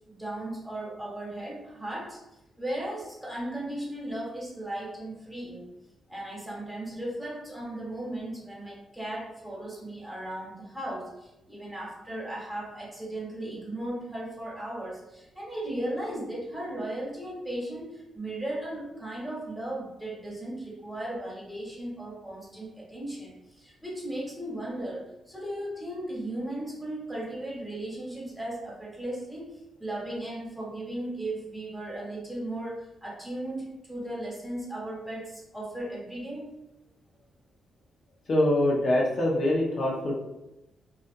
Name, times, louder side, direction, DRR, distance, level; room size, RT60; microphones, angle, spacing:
voice 1, 0.1-2.2 2.6-5.7 6.1-36.5, right 1 dB, ahead, -5 dB, 1.2 m, -36 dB
voice 2, 38.3-40.2, left 1 dB, 55° left, -3 dB, 0.6 m, -24 dB
2.4 x 2.3 x 2.5 m, 0.95 s
supercardioid pair, 60°, 0 cm